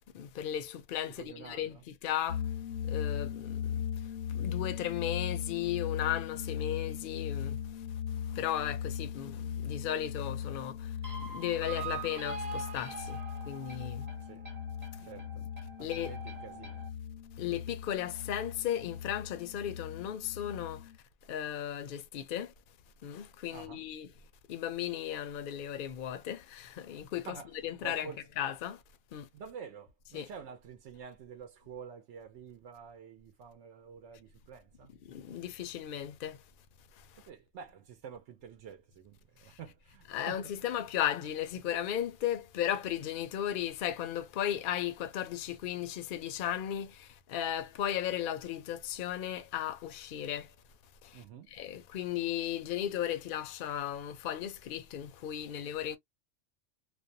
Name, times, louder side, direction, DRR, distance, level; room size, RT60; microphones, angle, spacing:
voice 1, 0.1-2.4 2.9-3.5 4.3-7.6 8.4-10.8 11.2-13.2 13.5-14.0 15.8-16.1 17.4-20.8 21.3-22.5 23.0-24.1 24.5-27.4 27.6-28.1 28.4-28.8 29.1-29.3 30.1-30.3 35.1-36.4 40.1-46.9 47.3-50.5 51.5-56.0, left 11 dB, 60° left, 0.6 m, -35 dB
voice 2, 1.1-1.8 14.2-14.5 15.0-15.4 15.8-16.9 23.5-23.8 27.3-28.3 29.3-34.9 37.2-40.8 51.1-51.5, right 7 dB, 75° right, 0.9 m, -48 dB
sound 1, 2.3-21.0, left 8 dB, 85° left, 1.0 m, -39 dB
sound 2, 11.0-16.9, right 5 dB, 35° right, 1.0 m, -44 dB
2.5 x 2.1 x 2.6 m
omnidirectional pair, 1.2 m